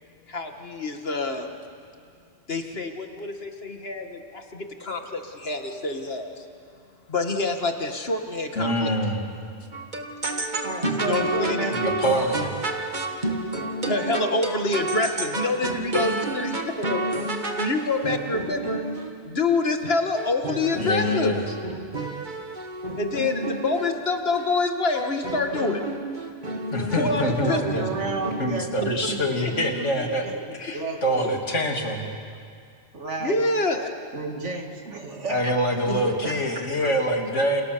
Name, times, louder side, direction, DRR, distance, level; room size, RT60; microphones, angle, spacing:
voice 1, 0.3-1.5 2.5-6.5 7.1-9.0 11.0-11.8 13.8-17.0 17.6-18.9 19.3-21.3 23.0-25.8 27.0-27.9 33.2-33.9, left 3 dB, 55° left, 4 dB, 2.2 m, -26 dB
voice 2, 8.5-9.3 11.7-12.5 20.8-21.4 26.7-28.1 28.4-30.2 30.6-32.1 35.3-37.6, equal, 90° left, 1 dB, 3.3 m, -25 dB
sound 1, 9.7-19.2 19.8-23.9 24.3-24.7 24.9-28.6, right 2 dB, 40° right, 1.9 m, -30 dB
voice 3, 10.6-12.3 27.0-31.4 32.9-33.4 34.1-37.0, right 3 dB, 80° right, 2 dB, 2.9 m, -32 dB
29.5 x 29.0 x 6.9 m, 2.3 s
omnidirectional pair, 1.2 m